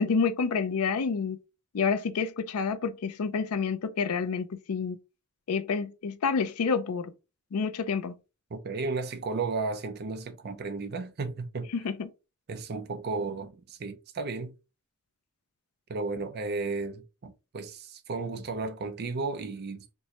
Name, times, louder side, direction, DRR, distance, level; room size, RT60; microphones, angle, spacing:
voice 1, 0.0-1.4 1.7-5.0 5.5-7.1 7.5-8.1 11.7-12.1, left 5 dB, 80° left, 0.5 m, -28 dB
voice 2, 8.5-11.7 12.5-14.5 15.9-19.9, right 3 dB, 45° right, 0.5 m, -34 dB
4.5 x 2.1 x 2.8 m
head